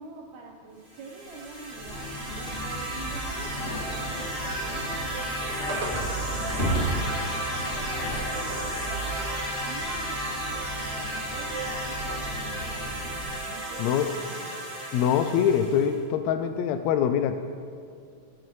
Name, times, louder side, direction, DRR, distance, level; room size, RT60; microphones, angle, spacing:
voice 1, 0.0-7.0 7.3-9.2 9.7-13.8 14.1-14.6, right 4 dB, 75° right, 0 dB, 2.1 m, -46 dB
sound 1, 0.9-16.0, right 1 dB, 10° right, 3.0 m, -33 dB
sound 2, 1.2-10.4, right 1 dB, 55° right, 2.9 m, -45 dB
sound 3, 1.7-13.4, right 1 dB, 30° left, 1.4 m, -35 dB
voice 2, 13.8-14.1 14.9-17.5, left 8 dB, 80° left, 8 dB, 1.6 m, -24 dB
14.0 x 14.0 x 3.2 m, 2.3 s
omnidirectional pair, 3.5 m